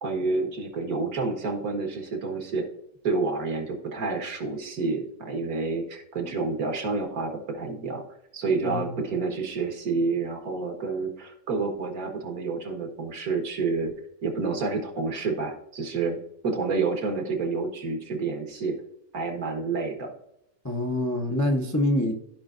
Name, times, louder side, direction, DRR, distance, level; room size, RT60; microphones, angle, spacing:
voice 1, 0.0-2.7 3.0-8.0 8.3-13.9 14.2-18.8 19.1-20.1, right 4 dB, 70° right, 3 dB, 1.9 m, -29 dB
voice 2, 20.6-22.1, left 1 dB, 15° left, 1 dB, 0.6 m, -25 dB
15.0 x 5.1 x 2.5 m, 0.82 s
omnidirectional pair, 1.6 m